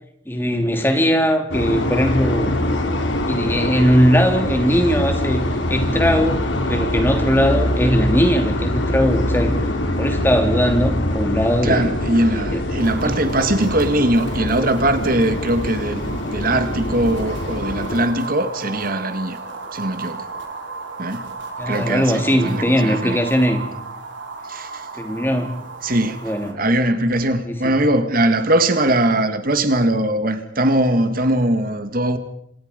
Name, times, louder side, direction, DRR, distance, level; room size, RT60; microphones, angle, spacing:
voice 1, 0.2-2.5 3.3-6.4 6.7-9.5 10.0-11.9 12.3-12.4 21.6-23.7 25.0-25.6 26.2-26.6 27.4-27.7, equal, 10° left, 3.1 m, -19 dB
sound 1, 1.5-18.0, left 1 dB, 75° left, 3.8 m, -23 dB
voice 2, 11.6-19.4 19.7-20.3 21.0-21.3 21.7-23.2 24.4-24.9 25.8-32.2, right 1 dB, 50° right, 2.0 m, -20 dB
sound 2, 12.8-26.5, right 3 dB, 70° right, 4.5 m, -34 dB
28.5 x 27.0 x 5.3 m
head